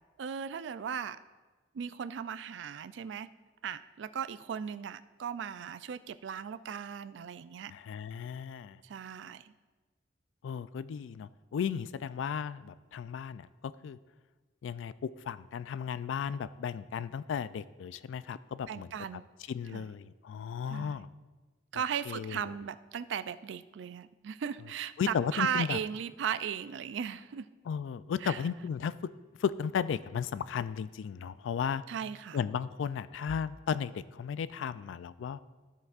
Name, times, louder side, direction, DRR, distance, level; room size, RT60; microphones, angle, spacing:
voice 1, 0.2-1.2 1.7-3.3 3.6-7.7 8.8-9.5 18.7-19.2 19.7-19.9 20.7-21.0 21.7-27.5 28.2-28.5 31.9-32.4, right 8 dB, 70° right, 13 dB, 0.3 m, -37 dB
voice 2, 7.7-8.8 10.4-13.5 13.8-14.0 14.6-18.9 19.5-21.1 22.1-22.4 25.0-25.8 27.7-28.9 29.4-31.8 32.3-35.4, left 7 dB, 85° left, 15 dB, 0.3 m, -35 dB
13.0 x 7.8 x 2.4 m, 1.3 s
head